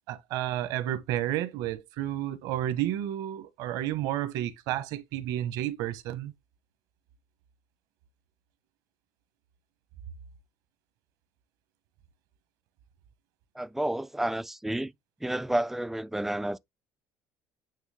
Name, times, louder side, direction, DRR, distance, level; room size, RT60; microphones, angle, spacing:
voice 1, 0.1-6.3, right 12 dB, 75° right, 1.2 m, -31 dB
voice 2, 13.5-14.9 15.2-16.6, right 1 dB, 5° right, 0.3 m, -30 dB
9.1 x 3.2 x 3.5 m
cardioid pair, 125°, 6 cm